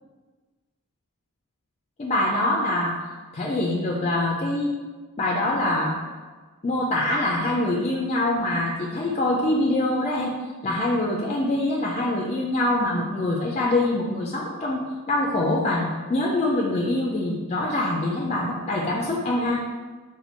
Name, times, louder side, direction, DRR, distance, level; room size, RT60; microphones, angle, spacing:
voice 1, 2.0-2.9 3.3-4.7 5.2-5.9 6.6-10.3 10.6-14.8 15.1-19.6, left 1 dB, 30° left, -2 dB, 0.4 m, -24 dB
4.3 x 2.2 x 4.2 m, 1.4 s
head